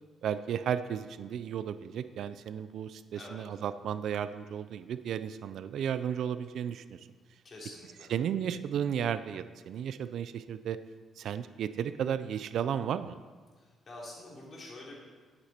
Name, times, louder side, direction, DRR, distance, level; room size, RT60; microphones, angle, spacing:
voice 1, 0.2-7.0 8.1-10.8 11.2-13.2, right 8 dB, 70° right, 13 dB, 0.4 m, -34 dB
voice 2, 3.1-3.4 7.4-8.1 13.6-15.0, left 2 dB, 40° left, -3 dB, 3.5 m, -47 dB
11.5 x 8.1 x 4.4 m, 1.5 s
cardioid pair, 90°, 0 cm